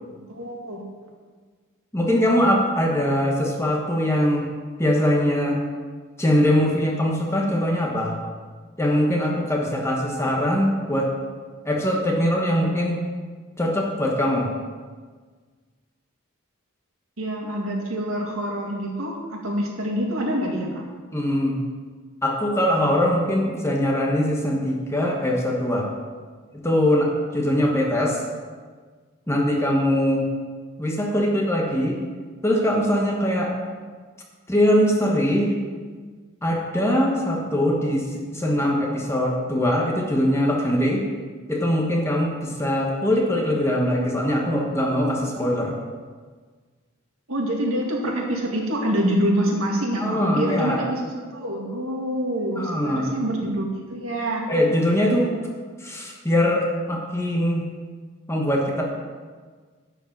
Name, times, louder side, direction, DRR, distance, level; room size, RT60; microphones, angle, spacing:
voice 1, 0.1-0.8 17.2-20.7 47.3-51.0 51.3-54.4, right 1 dB, 80° right, -1 dB, 2.2 m, -26 dB
voice 2, 1.9-4.5 4.8-5.6 6.2-8.2 8.8-11.1 11.6-13.0 13.6-14.5 21.1-21.6 22.2-25.9 26.6-28.2 29.3-30.3 30.8-32.0 32.4-33.5 34.5-35.5 36.4-41.0 41.5-45.7 50.0-50.8 52.6-53.1 54.5-55.3 55.8-57.6 58.3-58.8, equal, 15° left, -1 dB, 1.2 m, -22 dB
11.0 x 5.1 x 7.2 m, 1.5 s
head